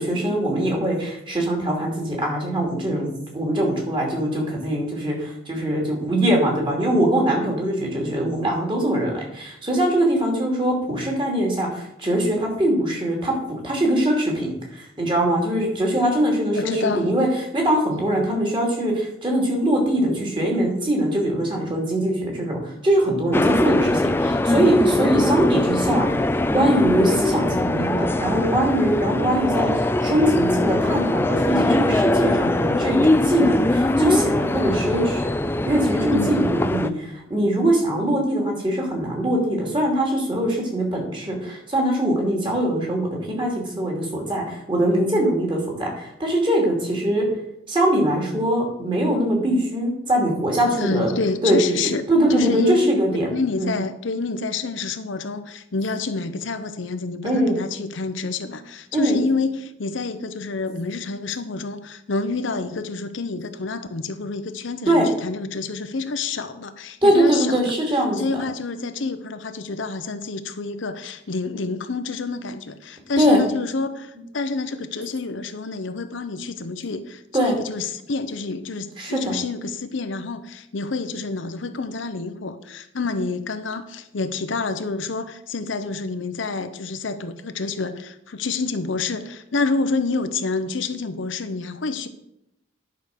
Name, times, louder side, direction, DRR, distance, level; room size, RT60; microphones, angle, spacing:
voice 1, 0.0-13.3 13.6-17.3 17.5-26.1 26.5-35.3 35.6-47.3 47.7-51.1 51.4-51.6 52.1-53.3 53.6-53.7 57.2-57.6 58.9-59.2 64.9-65.1 67.0-68.4 73.2-73.4 77.3-77.5 79.0-79.4, right 1 dB, 25° right, 2.7 m, -22 dB
voice 2, 16.6-17.1 36.1-36.4 50.7-52.9 53.3-67.7 68.2-92.1, left 3 dB, 80° left, 0.8 m, -28 dB
sound 1, 23.3-36.9, left 1 dB, 10° left, 0.3 m, -21 dB
10.5 x 5.1 x 6.5 m
head